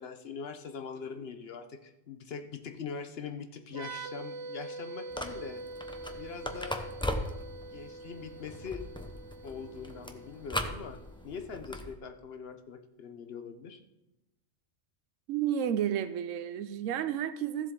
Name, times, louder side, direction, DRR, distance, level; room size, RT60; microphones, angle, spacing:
voice 1, 0.0-5.6 6.1-6.9 7.6-8.8 9.4-13.8, left 6 dB, 55° left, 8 dB, 1.0 m, -42 dB
sound 1, 3.7-11.2, right 3 dB, 55° right, 1.1 m, -44 dB
sound 2, 5.1-11.9, left 1 dB, 5° left, 0.5 m, -39 dB
voice 2, 15.3-17.7, right 9 dB, 80° right, 10 dB, 0.9 m, -31 dB
15.0 x 7.4 x 3.7 m, 0.93 s
omnidirectional pair, 1.3 m